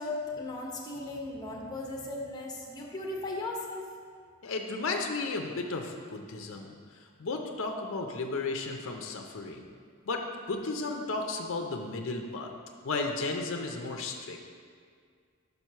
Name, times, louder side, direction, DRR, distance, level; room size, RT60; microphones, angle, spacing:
voice 1, 0.0-3.8, left 2 dB, 20° left, -1 dB, 0.8 m, -37 dB
voice 2, 4.4-6.7 7.2-9.6 10.1-12.5 12.8-14.4, left 3 dB, 65° left, 3 dB, 0.5 m, -34 dB
5.3 x 4.5 x 5.5 m, 2.1 s
head